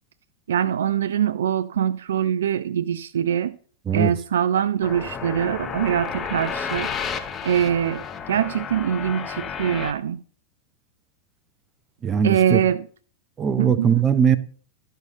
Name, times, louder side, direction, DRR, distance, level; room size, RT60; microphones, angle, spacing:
voice 1, 0.5-3.6 3.9-6.9 7.4-10.2 12.2-12.8 13.6-13.9, right 9 dB, 65° right, 0.4 m, -23 dB
sound 1, 4.8-9.9, left 6 dB, 25° left, 0.8 m, -32 dB
voice 2, 12.0-12.6 13.4-14.4, right 7 dB, 25° right, 0.7 m, -20 dB
12.0 x 6.5 x 4.0 m
figure-of-eight pair, 90°, 0 cm